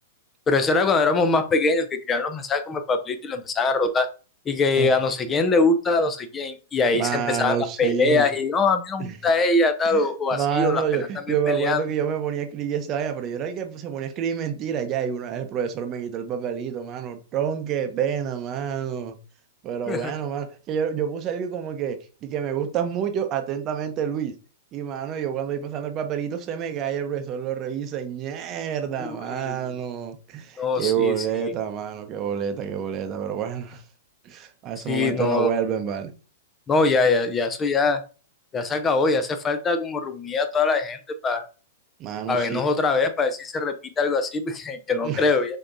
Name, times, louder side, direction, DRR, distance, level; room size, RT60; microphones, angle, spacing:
voice 1, 0.5-4.1 4.5-11.1 11.5-11.8 19.9-20.1 29.3-29.6 30.6-31.3 34.9-35.5 36.7-38.0 38.5-41.5 42.3-45.6, left 3 dB, 20° left, 0.5 m, -23 dB
voice 2, 6.9-8.3 9.0-9.2 9.9-19.2 19.6-24.3 24.7-33.8 34.2-36.1 42.0-42.6 45.0-45.3, right 8 dB, 35° right, 0.7 m, -28 dB
5.9 x 2.8 x 2.6 m
hypercardioid pair, 115°, 0 cm